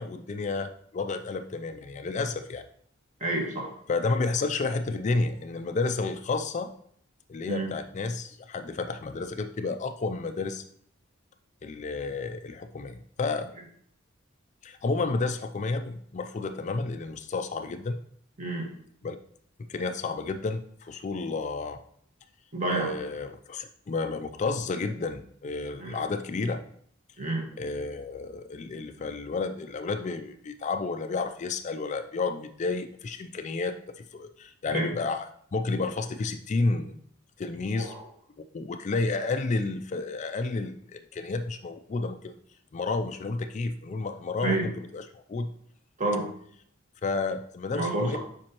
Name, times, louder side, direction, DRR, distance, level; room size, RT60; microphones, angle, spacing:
voice 1, 0.0-2.6 3.9-6.7 7.3-10.6 11.6-13.5 14.6-18.0 19.0-19.2 19.7-21.8 22.7-26.6 27.6-37.0 37.4-37.9 38.5-42.4 42.7-45.5 47.0-48.2, left 3 dB, 35° left, 8 dB, 0.4 m, -31 dB
voice 2, 3.2-3.7 7.5-7.7 18.4-18.7 22.5-22.9 25.8-26.0 27.2-27.5 34.7-34.9 37.7-38.1 44.4-44.7 46.0-46.3 47.7-48.2, right 2 dB, 40° right, 0 dB, 1.5 m, -29 dB
7.5 x 5.2 x 2.9 m, 0.62 s
head